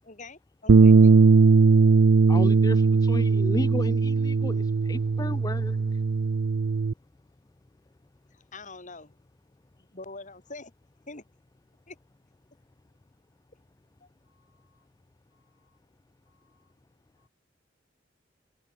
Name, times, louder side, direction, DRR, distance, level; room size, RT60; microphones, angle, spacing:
voice 1, 0.0-1.2 8.3-9.2 9.8-10.7 11.1-11.2 11.9-12.0 14.0-14.1, left 3 dB, 40° left, 5.0 m, -44 dB
Bass guitar, 0.7-6.9, right 4 dB, 75° right, 0.5 m, -19 dB
voice 2, 2.3-5.8, left 2 dB, 20° left, 0.4 m, -34 dB
voice 3, 14.3-14.8 15.6-15.8 16.3-16.7 17.2-17.3, left 4 dB, 75° left, 2.6 m, -71 dB
head